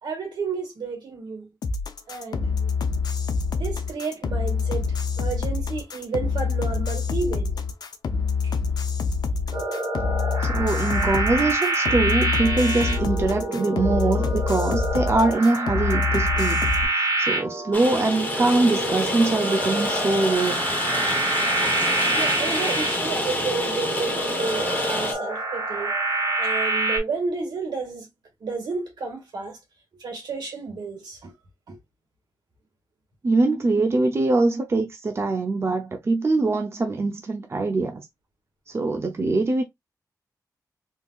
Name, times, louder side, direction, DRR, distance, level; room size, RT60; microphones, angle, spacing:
voice 1, 0.0-1.5 2.1-2.5 3.5-4.9 5.2-7.6 8.4-8.5 22.1-25.9 26.4-28.1 28.4-29.6 30.0-31.3 31.7-31.8, right 4 dB, 90° right, 1.9 m, -31 dB
sound 1, 1.6-16.8, left 5 dB, 75° left, 0.6 m, -26 dB
sound 2, 9.5-27.0, right 2 dB, 70° right, 2.1 m, -27 dB
voice 2, 10.4-16.6 16.9-20.6 33.2-38.1 38.7-39.6, right 3 dB, 40° right, 0.6 m, -23 dB
Rain, 17.7-25.1, left 2 dB, 25° left, 1.0 m, -28 dB
3.7 x 2.8 x 2.4 m
wide cardioid pair, 105°, 7 cm